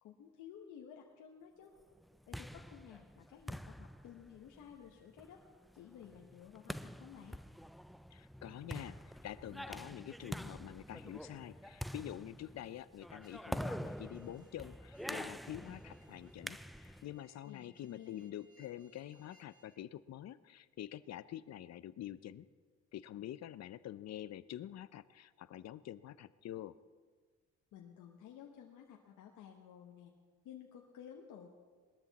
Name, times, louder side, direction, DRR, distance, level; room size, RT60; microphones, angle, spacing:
voice 1, 0.0-1.7 2.3-5.4 5.7-7.4 17.4-18.3 27.7-30.1 30.4-31.5, left 9 dB, 85° left, 0 dB, 1.3 m, -54 dB
sound 1, 2.0-17.1, equal, ahead, 0.3 m, -46 dB
voice 2, 8.1-22.5 22.9-26.8, left 12 dB, 60° left, 16 dB, 0.6 m, -47 dB
sound 2, 13.2-19.8, right 1 dB, 30° left, 1.6 m, -70 dB
20.5 x 13.0 x 4.1 m, 1.5 s
cardioid pair, 90°, 30 cm